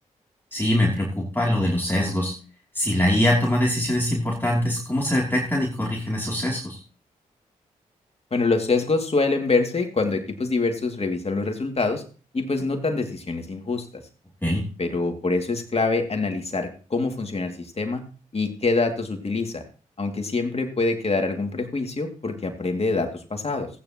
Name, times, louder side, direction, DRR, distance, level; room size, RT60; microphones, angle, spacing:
voice 1, 0.5-2.3 2.7-6.8 14.4-14.6, left 1 dB, 15° left, -2 dB, 2.9 m, -23 dB
voice 2, 8.3-12.0 12.3-13.9 14.8-18.0 18.3-19.6 20.0-23.7, left 3 dB, 40° left, 5 dB, 2.3 m, -25 dB
15.5 x 9.3 x 2.9 m, 0.37 s
supercardioid pair, 45°, 15 cm